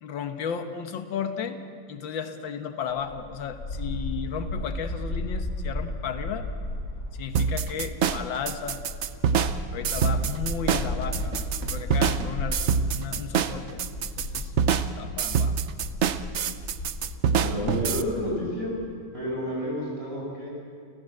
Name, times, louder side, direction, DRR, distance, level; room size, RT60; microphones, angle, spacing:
voice 1, 0.0-1.6 1.9-6.5 7.2-8.8 9.7-11.4 11.7-14.5 14.9-15.6, left 7 dB, 90° left, 8 dB, 1.9 m, -34 dB
sound 1, 2.9-17.9, left 1 dB, 60° left, 2.6 m, -35 dB
sound 2, 7.3-18.0, right 7 dB, 60° right, 0.7 m, -26 dB
sound 3, 10.1-10.9 11.2-13.0, right 4 dB, 80° right, 2.1 m, -43 dB
voice 2, 17.4-18.8 19.1-20.5, left 1 dB, 30° right, -3 dB, 7.0 m, -30 dB
29.5 x 15.0 x 7.7 m, 2.3 s
omnidirectional pair, 2.0 m